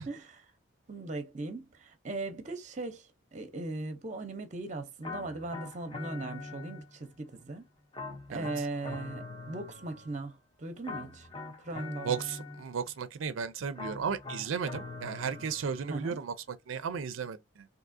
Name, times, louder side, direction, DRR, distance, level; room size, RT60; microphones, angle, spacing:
voice 1, 0.1-0.5 0.9-7.7 8.3-11.3 11.6-12.2 15.9-16.2, right 2 dB, 35° right, 0.6 m, -39 dB
sound 1, 5.0-7.1 7.9-10.3 10.8-12.9 13.8-16.1, left 3 dB, 25° left, 0.6 m, -43 dB
voice 2, 8.3-8.7 12.0-17.7, right 6 dB, 80° right, 0.4 m, -35 dB
3.5 x 2.7 x 2.6 m
head